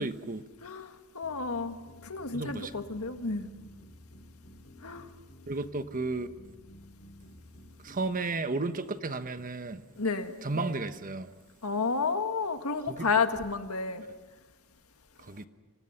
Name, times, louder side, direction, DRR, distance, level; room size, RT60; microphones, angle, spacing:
voice 1, 0.0-0.4 2.3-2.7 5.5-6.3 7.8-9.8 10.4-11.3 12.9-13.1 15.3-15.5, right 3 dB, 40° right, 1.1 m, -33 dB
voice 2, 0.6-3.5 4.8-5.1 10.0-10.3 11.6-14.0, left 4 dB, 70° left, 1.8 m, -31 dB
sound 1, 1.2-8.1, equal, 45° left, 7.1 m, -53 dB
30.0 x 25.5 x 5.8 m
head